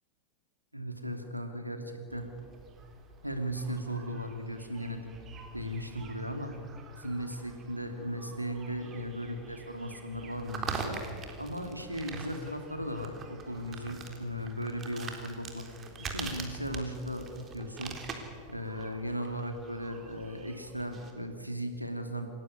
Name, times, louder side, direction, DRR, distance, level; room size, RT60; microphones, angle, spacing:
voice 1, 0.7-2.3 3.2-5.0 5.5-6.5 7.0-11.0 11.4-15.6 16.0-17.9 18.5-22.3, equal, 90° right, 6 dB, 2.8 m, -37 dB
sound 1, 2.1-21.1, right 4 dB, 25° right, 3.7 m, -45 dB
27.5 x 17.0 x 9.7 m, 2.3 s
figure-of-eight pair, 90°, 0 cm